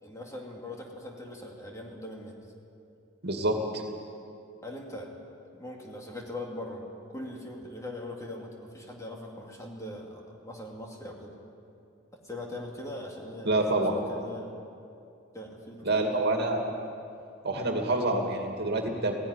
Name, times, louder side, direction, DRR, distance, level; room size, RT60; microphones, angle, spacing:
voice 1, 0.0-2.3 4.6-5.1 5.5-6.9 7.1-11.4 12.2-14.6 15.3-16.2, left 1 dB, 15° left, 0 dB, 2.5 m, -41 dB
voice 2, 3.2-3.8 13.5-13.9 15.8-16.6 17.4-19.2, right 2 dB, 55° right, 2 dB, 2.4 m, -27 dB
16.5 x 16.5 x 9.9 m, 2.5 s
head